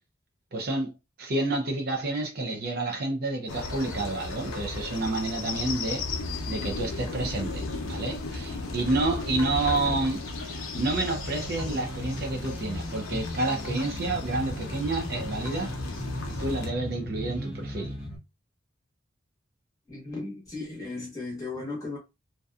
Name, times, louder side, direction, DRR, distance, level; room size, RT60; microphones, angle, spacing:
voice 1, 0.5-0.9 1.2-6.0 6.5-15.7 16.4-17.9, right 2 dB, 50° right, 0.5 m, -29 dB
sound 1, 3.5-16.7, left 2 dB, 90° left, 0.6 m, -35 dB
sound 2, 11.1-18.2, left 1 dB, 10° right, 0.9 m, -37 dB
voice 2, 19.9-22.0, left 3 dB, 15° left, 1.0 m, -36 dB
2.6 x 2.2 x 2.3 m
head